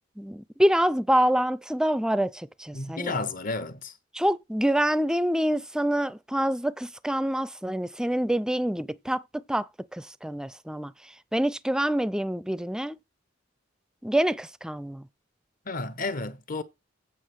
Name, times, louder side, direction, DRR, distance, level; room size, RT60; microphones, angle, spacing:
voice 1, 0.2-3.2 4.1-13.0 14.0-15.1, equal, 5° right, 0.4 m, -26 dB
voice 2, 2.7-3.9 15.7-16.6, left 3 dB, 45° left, 1.1 m, -32 dB
8.5 x 5.3 x 6.2 m
head